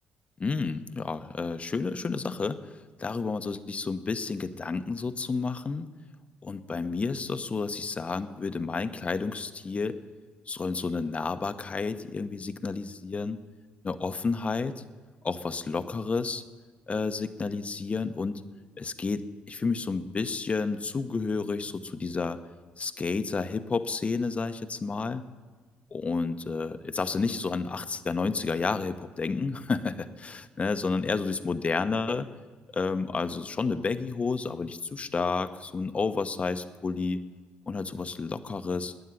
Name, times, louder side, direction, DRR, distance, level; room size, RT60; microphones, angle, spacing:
voice 1, 0.4-2.6 3.0-5.9 6.4-10.0 10.5-13.4 13.8-14.8 15.2-16.4 16.9-18.4 18.8-22.4 22.8-25.2 25.9-32.3 32.7-37.2 37.7-38.9, left 4 dB, 35° left, 10 dB, 0.9 m, -30 dB
12.0 x 9.2 x 9.9 m, 1.4 s
supercardioid pair, 75°, 4 cm